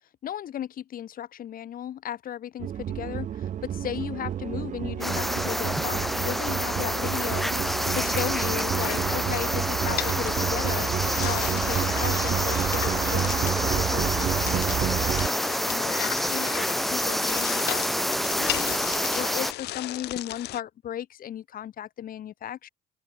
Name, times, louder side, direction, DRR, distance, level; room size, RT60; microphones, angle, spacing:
voice 1, 0.2-15.3 15.7-18.8 19.1-22.7, left 11 dB, 55° left, 4.5 m, -36 dB
sound 1, 2.6-15.3, right 10 dB, 45° right, 0.8 m, -30 dB
sound 2, 5.0-19.5, equal, ahead, 1.4 m, -28 dB
sound 3, 6.9-20.6, left 17 dB, 80° left, 1.7 m, -37 dB
open air
cardioid pair, 110°, 17 cm